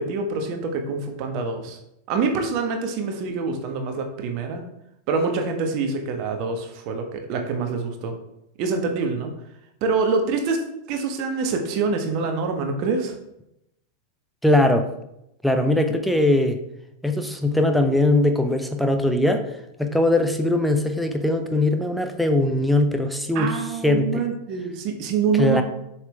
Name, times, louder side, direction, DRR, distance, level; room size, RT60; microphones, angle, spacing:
voice 1, 0.0-1.8 2.1-4.6 5.1-8.1 8.6-9.3 9.8-10.6 10.9-13.2 23.3-25.6, right 4 dB, 40° right, 5 dB, 1.3 m, -25 dB
voice 2, 14.4-14.9 15.4-16.6 17.0-19.4 19.8-24.2 25.4-25.6, left 1 dB, ahead, 5 dB, 0.8 m, -20 dB
7.3 x 6.0 x 3.4 m, 0.82 s
figure-of-eight pair, 90°, 0 cm